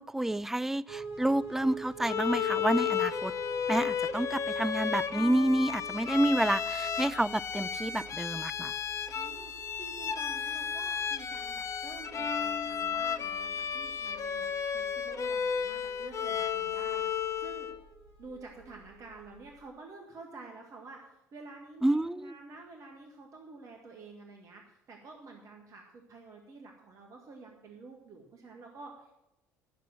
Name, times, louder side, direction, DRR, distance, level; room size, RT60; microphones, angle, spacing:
voice 1, 0.0-3.3 3.7-8.7 21.8-22.4, right 1 dB, 5° right, 17 dB, 0.3 m, -29 dB
sound 1, 0.9-19.6, right 4 dB, 75° right, 4.1 m, -48 dB
Bowed string instrument, 2.0-17.8, left 7 dB, 40° left, 0.7 m, -33 dB
voice 2, 9.1-9.5 9.8-17.8 18.2-29.1, right 3 dB, 45° right, 1 dB, 1.7 m, -49 dB
11.0 x 6.6 x 7.6 m, 0.91 s
hypercardioid pair, 60°, 8 cm